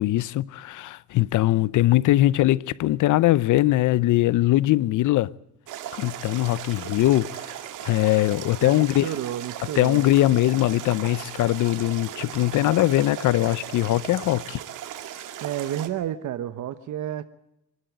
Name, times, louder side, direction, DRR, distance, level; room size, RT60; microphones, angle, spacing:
voice 1, 0.0-5.3 5.9-7.5 7.8-9.1 9.8-14.6, left 16 dB, 80° left, 0.7 m, -21 dB
sound 1, 5.7-15.9, right 11 dB, 90° right, 2.2 m, -37 dB
voice 2, 8.6-10.0 15.4-17.3, right 11 dB, 75° right, 1.2 m, -31 dB
24.5 x 12.5 x 9.4 m
cardioid pair, 90°, 30 cm